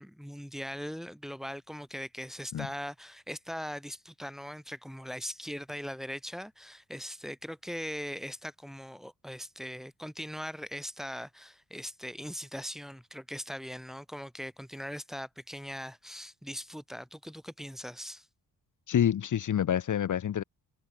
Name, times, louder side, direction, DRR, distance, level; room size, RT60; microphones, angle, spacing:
voice 1, 0.0-18.3, equal, ahead, 1.7 m, -40 dB
voice 2, 18.9-20.4, left 9 dB, 60° left, 1.4 m, -27 dB
cardioid pair, 115°, 35 cm